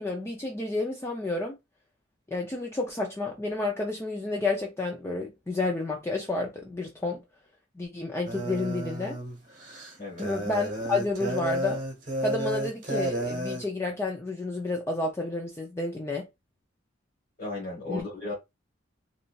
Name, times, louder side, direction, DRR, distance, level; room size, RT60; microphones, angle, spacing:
voice 1, 0.0-1.6 2.3-7.2 7.8-9.2 10.2-11.8 12.2-16.3 17.9-18.0, left 2 dB, 15° left, 0.4 m, -30 dB
sound 1, 8.3-13.6, right 1 dB, 40° right, 1.0 m, -32 dB
voice 2, 10.0-10.3 17.4-18.3, left 2 dB, 40° left, 1.2 m, -35 dB
3.0 x 2.6 x 2.3 m
head